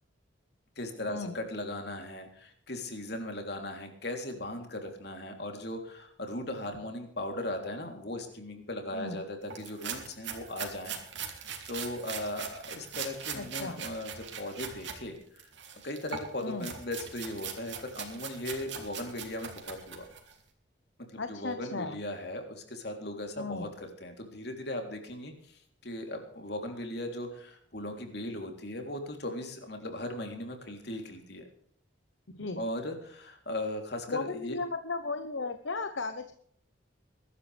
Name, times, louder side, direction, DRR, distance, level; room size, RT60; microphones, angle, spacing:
voice 1, 0.8-11.0 11.2-15.5 15.8-20.1 21.1-31.4 32.6-34.6, left 1 dB, 55° left, 4 dB, 3.4 m, -38 dB
voice 2, 8.9-9.2 13.3-13.8 16.4-16.7 21.2-22.0 23.4-23.7 32.4-32.6 34.1-36.3, left 3 dB, 70° left, 9 dB, 1.0 m, -35 dB
sound 1, 9.5-15.0 15.4-20.3, right 7 dB, 65° right, 3.0 m, -41 dB
22.5 x 12.5 x 3.5 m, 0.62 s
head